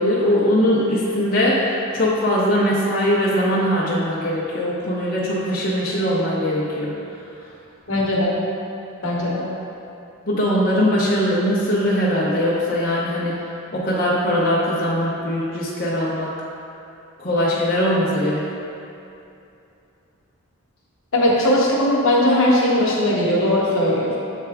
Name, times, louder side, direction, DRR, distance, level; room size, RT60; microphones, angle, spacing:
voice 1, 0.0-6.9 10.3-13.4 13.7-16.3 17.2-18.4, equal, 40° left, -7 dB, 0.7 m, -21 dB
voice 2, 7.9-8.4 9.0-9.4 21.1-24.2, left 1 dB, 65° left, -4 dB, 1.0 m, -19 dB
7.9 x 3.4 x 3.5 m, 2.7 s
head